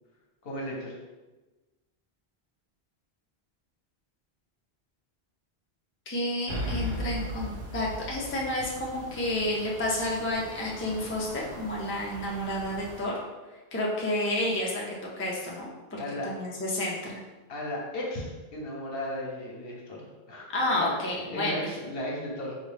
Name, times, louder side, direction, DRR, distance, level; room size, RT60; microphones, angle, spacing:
voice 1, 0.4-1.0 16.0-16.3 17.5-20.5 20.7-20.9 21.3-22.6, left 1 dB, 70° left, -2 dB, 1.0 m, -35 dB
voice 2, 6.1-13.1 13.7-17.2 20.5-21.7, left 1 dB, 15° left, -3 dB, 0.4 m, -30 dB
sound 1, 6.5-13.0, equal, 55° right, 0.8 m, -38 dB
3.9 x 2.4 x 3.3 m, 1.2 s
omnidirectional pair, 1.0 m